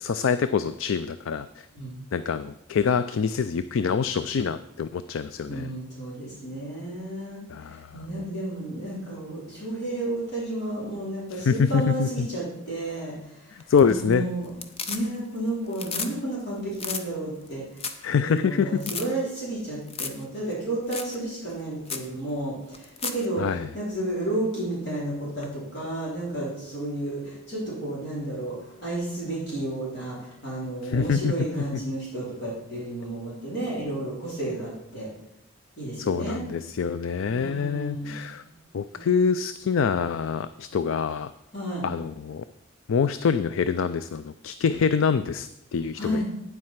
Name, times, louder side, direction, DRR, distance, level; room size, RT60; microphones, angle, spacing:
voice 1, 0.0-1.7 2.1-5.7 7.5-8.3 11.3-12.3 13.5-14.2 18.0-18.8 23.4-23.7 30.8-31.5 36.0-38.4 38.7-41.3 41.8-42.4 42.9-46.2, left 6 dB, 70° left, 13 dB, 0.4 m, -25 dB
voice 2, 5.5-7.4 7.7-13.5 13.9-14.5 14.9-17.7 18.2-23.5 23.7-28.6 28.8-35.1 35.8-36.4 37.3-38.1 38.9-39.2 41.5-41.8 46.0-46.2, right 1 dB, 50° left, -7 dB, 4.0 m, -32 dB
sound 1, 13.6-14.1 14.4-15.4 15.7-16.1 16.4-16.5 16.7-17.0 17.5-17.6 17.8-18.1 18.4-18.5 18.8-19.0 19.9-20.2 20.5-20.6 20.9-21.1 21.5-21.6 21.9-22.1 22.7-23.2 25.4-25.5, left 5 dB, 30° left, 0.7 m, -33 dB
9.3 x 7.7 x 5.8 m, 0.83 s
head